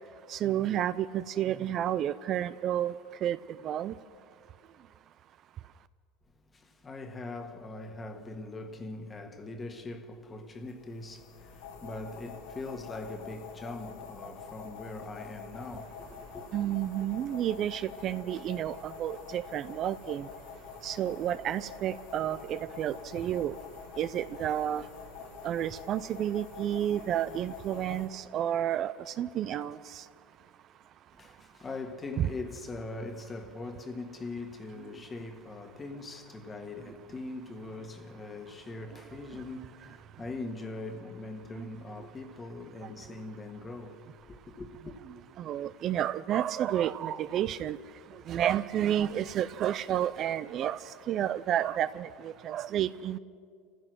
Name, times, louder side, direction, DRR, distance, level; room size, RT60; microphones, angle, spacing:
voice 1, 0.3-3.4 3.6-3.9 16.5-20.3 20.8-23.6 24.0-24.8 25.4-30.0 32.2-32.3 45.4-47.8 48.3-50.8 51.1-53.2, right 11 dB, 40° right, 0.4 m, -31 dB
voice 2, 6.5-16.4 31.1-45.0, left 2 dB, 20° left, 1.6 m, -41 dB
sound 1, 10.6-28.1, left 5 dB, 85° left, 2.7 m, -46 dB
29.5 x 15.5 x 6.2 m
supercardioid pair, 135°, 0 cm